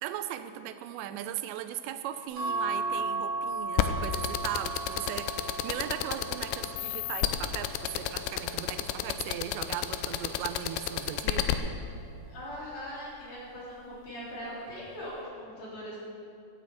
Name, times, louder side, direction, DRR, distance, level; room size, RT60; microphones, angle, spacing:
voice 1, 0.0-11.5, right 11 dB, 85° right, 10 dB, 2.8 m, -38 dB
sound 1, 2.4-9.0 9.6-11.0 12.3-12.7 13.0-13.1, right 3 dB, 30° right, 1.8 m, -37 dB
sound 2, 3.8-11.5, left 13 dB, 85° left, 2.8 m, -29 dB
voice 2, 12.3-16.0, equal, 50° left, -7 dB, 4.4 m, -40 dB
9.5 x 9.2 x 7.7 m, 2.6 s
omnidirectional pair, 5.0 m